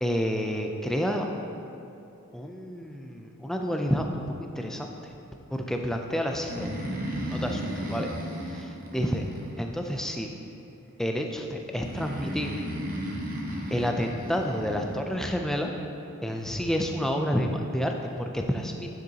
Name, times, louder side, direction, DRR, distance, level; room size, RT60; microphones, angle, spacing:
voice 1, 0.0-1.3 2.3-5.1 5.5-6.8 7.3-8.1 8.5-9.2 9.6-10.3 11.0-12.5 13.7-15.7 16.2-18.9, equal, ahead, 2 dB, 0.4 m, -29 dB
Breathing, 6.3-10.0 11.8-14.9, equal, 40° right, 0.9 m, -34 dB
10.5 x 6.2 x 2.8 m, 2.8 s
head